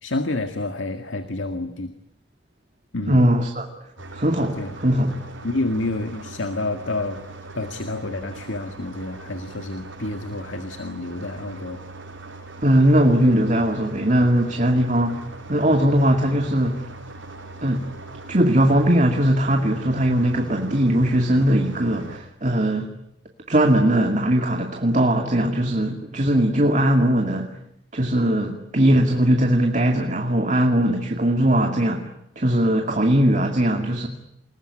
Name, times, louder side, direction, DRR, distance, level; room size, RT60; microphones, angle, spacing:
voice 1, 0.0-1.9 2.9-3.2 4.6-4.8 5.4-7.2 7.5-11.8, left 2 dB, 80° left, 8 dB, 1.9 m, -29 dB
voice 2, 3.1-3.7 4.1-5.1 12.6-15.2 15.5-16.9 17.6-17.9 18.3-22.9 23.5-27.5 27.9-32.1 32.4-34.1, right 1 dB, 40° right, 3 dB, 2.3 m, -20 dB
sound 1, 4.0-22.2, right 2 dB, 85° right, 6.0 m, -40 dB
28.5 x 20.0 x 9.9 m, 0.78 s
head